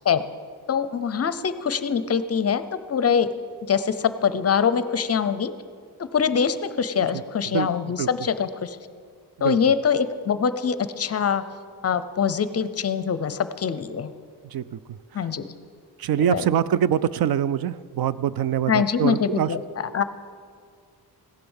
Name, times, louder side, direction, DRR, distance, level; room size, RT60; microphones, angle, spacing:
voice 1, 0.7-3.3 3.7-5.5 6.0-8.8 9.4-11.4 11.8-14.1 15.1-15.5 16.3-16.4 18.7-19.6 19.9-20.0, left 7 dB, 40° left, 13 dB, 0.6 m, -23 dB
voice 2, 14.4-15.3 16.0-19.5, right 10 dB, 65° right, 17 dB, 0.5 m, -25 dB
15.5 x 10.5 x 7.1 m, 2.1 s
wide cardioid pair, 160°, 39 cm